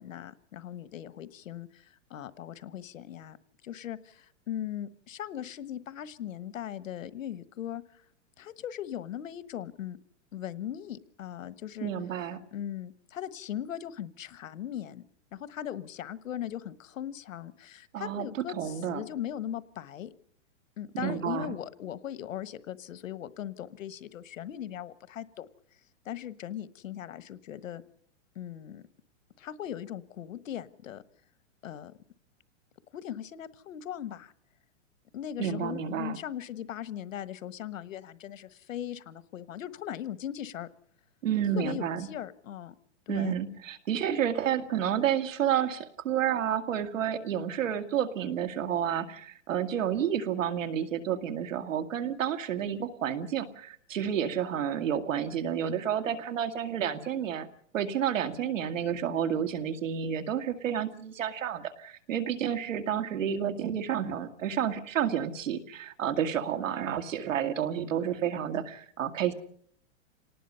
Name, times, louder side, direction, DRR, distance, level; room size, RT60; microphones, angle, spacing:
voice 1, 0.0-3.4 3.6-8.0 8.4-10.0 10.3-11.9 12.5-15.0 15.3-20.1 20.8-25.5 26.0-27.8 28.3-28.8 29.4-31.0 31.6-31.9 32.9-34.3 35.1-40.7 41.6-42.7 43.1-43.3, left 10 dB, 85° left, 14 dB, 1.3 m, -39 dB
voice 2, 11.8-12.4 17.9-19.0 20.9-21.6 35.4-36.2 41.2-42.1 43.1-57.5 57.7-69.3, right 9 dB, 80° right, 7 dB, 2.2 m, -30 dB
27.5 x 19.0 x 5.6 m, 0.66 s
supercardioid pair, 175°, 38 cm